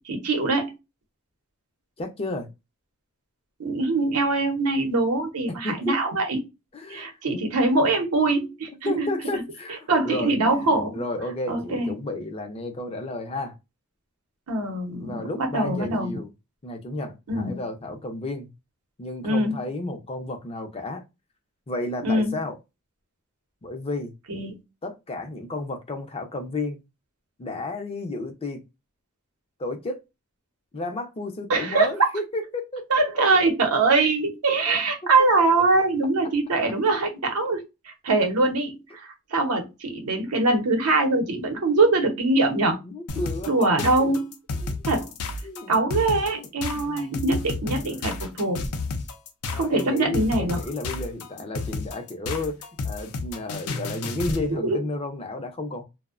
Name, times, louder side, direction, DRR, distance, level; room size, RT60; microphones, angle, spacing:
voice 1, 0.0-0.7 3.6-6.4 6.9-9.4 9.9-11.0 11.5-11.9 14.5-16.1 17.3-17.5 19.2-19.6 22.0-22.3 24.3-24.5 31.5-32.1 32.9-42.8 43.5-44.2 44.8-45.1 45.7-48.6 49.5-50.6 54.5-54.8, right 2 dB, 90° right, 0.7 m, -23 dB
voice 2, 2.0-2.5 5.5-6.0 6.7-7.2 8.9-13.5 15.0-16.3 16.6-18.5 19.0-21.0 21.7-22.6 23.6-24.1 24.8-26.8 27.4-28.6 29.6-30.0 30.7-32.9 34.7-35.1 42.8-44.1 44.6-44.8 45.4-45.9 46.4-46.5 46.8-47.3 47.9-48.1 49.5-55.8, left 2 dB, 25° left, 0.4 m, -32 dB
sound 1, 43.1-54.5, left 3 dB, 85° left, 0.5 m, -31 dB
2.5 x 2.0 x 2.4 m
head